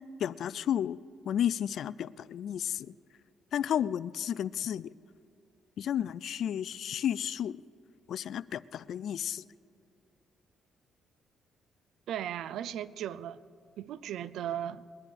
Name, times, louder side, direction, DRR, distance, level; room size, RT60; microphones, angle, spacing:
voice 1, 0.2-1.0 1.3-2.9 3.5-4.9 5.8-7.5 8.1-9.4, left 10 dB, 70° left, 0.3 m, -32 dB
voice 2, 12.1-13.4 13.8-14.8, right 10 dB, 80° right, 0.4 m, -36 dB
21.0 x 10.5 x 5.2 m
cardioid pair, 90°, 0 cm